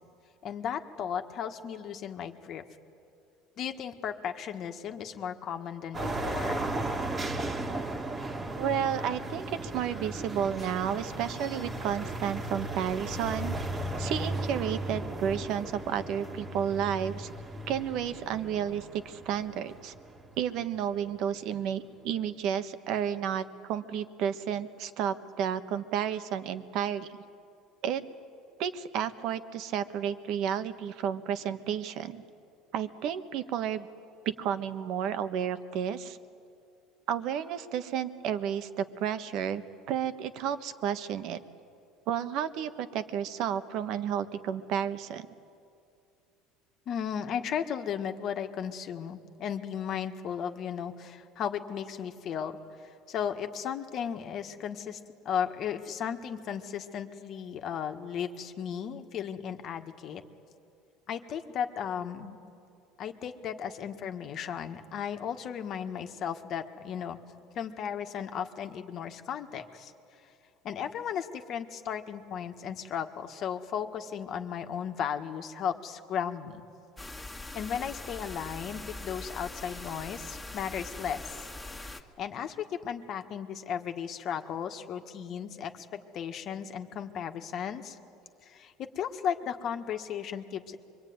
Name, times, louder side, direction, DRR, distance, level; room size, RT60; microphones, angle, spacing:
voice 1, 0.4-2.6 3.6-6.6 46.9-52.5 53.1-55.0 55.3-60.2 61.1-62.4 63.0-67.2 67.6-69.9 70.6-76.6 77.5-81.2 81.8-88.0 88.4-90.8, left 8 dB, 45° left, 6 dB, 1.6 m, -35 dB
sound 1, 5.9-20.7, right 2 dB, 25° right, 1.9 m, -36 dB
voice 2, 8.6-13.6 14.0-17.3 17.7-19.9 20.4-27.2 27.8-28.0 28.6-32.2 32.7-33.9 34.2-36.2 37.1-41.4 42.1-45.3, right 9 dB, 60° right, 11 dB, 1.3 m, -32 dB
sound 2, 77.0-82.0, left 2 dB, 5° left, 2.0 m, -42 dB
25.5 x 23.5 x 9.5 m, 2.5 s
cardioid pair, 130°, 0 cm